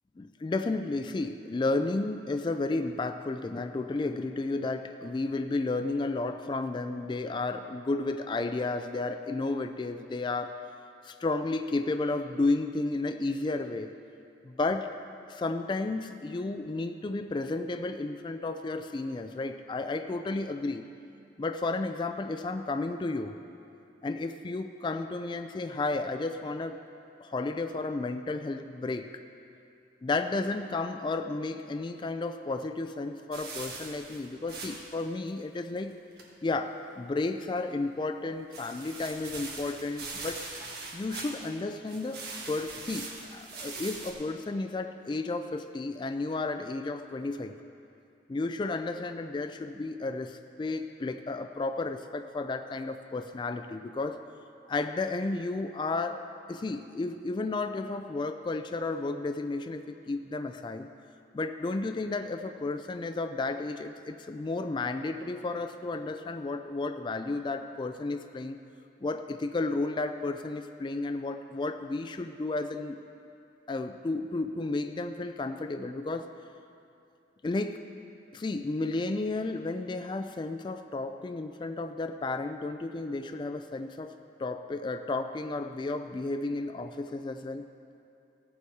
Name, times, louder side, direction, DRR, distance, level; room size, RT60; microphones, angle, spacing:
voice 1, 0.2-10.6 11.0-13.9 14.4-14.9 15.3-20.8 21.4-23.4 24.0-26.8 27.2-29.2 30.0-36.0 36.4-40.5 40.9-47.6 48.3-54.2 54.7-60.9 61.3-68.6 69.0-73.0 73.7-76.3 77.4-77.8 78.3-87.6, left 3 dB, 25° left, 8 dB, 0.3 m, -32 dB
sound 1, 33.3-35.0 35.3-35.4 35.8-35.9 36.2-36.3 38.5-41.6 41.9-44.1, right 3 dB, 60° right, 1.6 m, -41 dB
15.5 x 7.1 x 4.6 m, 2.6 s
head